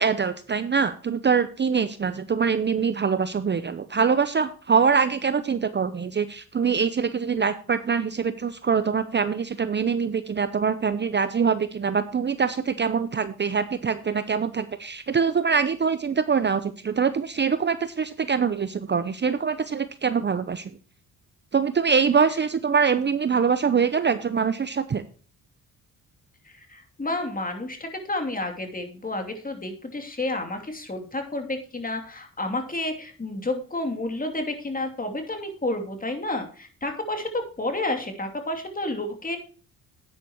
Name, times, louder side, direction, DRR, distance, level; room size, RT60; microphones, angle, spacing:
voice 1, 0.0-20.7 21.5-25.0, right 6 dB, 30° right, 12 dB, 0.7 m, -24 dB
voice 2, 26.4-39.4, left 2 dB, 25° left, 4 dB, 2.8 m, -30 dB
11.0 x 9.5 x 3.0 m, 0.40 s
cardioid pair, 75°, 35 cm